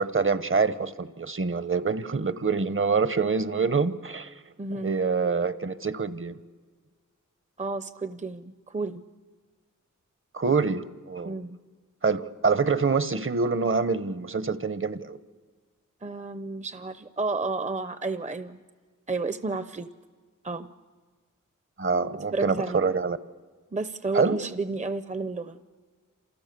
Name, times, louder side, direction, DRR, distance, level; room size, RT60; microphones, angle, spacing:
voice 1, 0.0-4.3 4.8-6.4 10.3-11.4 12.0-15.2 21.8-23.2 24.1-24.4, right 5 dB, 40° right, 13 dB, 1.1 m, -26 dB
voice 2, 4.6-4.9 7.6-9.0 11.2-11.6 16.0-18.6 19.1-19.9 20.4-20.7 22.3-23.0 23.7-25.6, right 3 dB, 25° right, 12 dB, 0.8 m, -31 dB
29.0 x 28.0 x 6.8 m, 1.5 s
wide cardioid pair, 75°, 31 cm